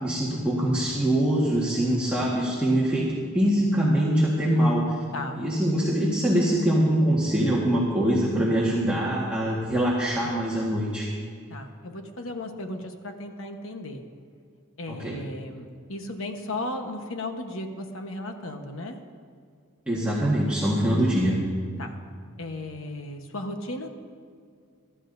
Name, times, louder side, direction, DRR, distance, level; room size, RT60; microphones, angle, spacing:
voice 1, 0.0-3.1 3.3-5.0 5.4-11.1 14.9-15.2 19.9-21.4, right 1 dB, 5° right, -7 dB, 1.6 m, -23 dB
voice 2, 11.5-14.0 14.8-19.0 21.8-22.0 22.4-23.9, left 1 dB, 70° left, 5 dB, 1.2 m, -35 dB
23.0 x 12.5 x 2.7 m, 2.2 s
head